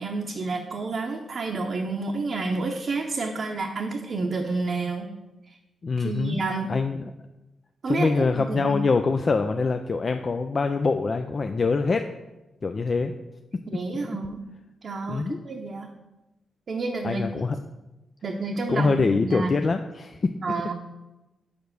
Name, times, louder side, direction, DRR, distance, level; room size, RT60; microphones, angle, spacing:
voice 1, 0.0-5.1 5.5-5.6 6.0-6.7 7.8-8.8 13.7-14.4 14.8-15.9 16.7-17.2 18.2-19.5 20.4-20.7, right 3 dB, 60° right, 1 dB, 0.7 m, -29 dB
voice 2, 5.8-6.4 6.7-7.1 7.9-12.1 12.6-13.1 15.1-15.4 17.0-17.6 18.7-20.3 20.6-20.7, left 4 dB, 45° left, 6 dB, 0.4 m, -24 dB
5.3 x 5.1 x 6.2 m, 1.0 s
supercardioid pair, 50°, 0 cm